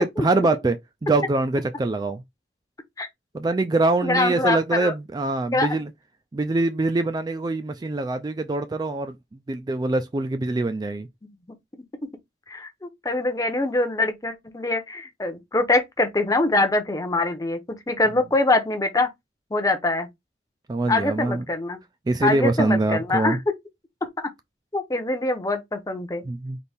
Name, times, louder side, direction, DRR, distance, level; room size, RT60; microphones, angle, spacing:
voice 1, 0.0-2.2 3.3-5.9 6.3-11.1 20.7-21.4 22.1-23.4 26.2-26.6, right 2 dB, 25° right, 0.3 m, -24 dB
voice 2, 4.0-4.9 5.5-5.8 12.5-17.6 17.9-19.1 19.5-20.1 20.9-21.8 22.2-23.4 24.2-24.3 24.7-26.2, left 2 dB, 20° left, 0.7 m, -24 dB
4.1 x 2.7 x 3.5 m
head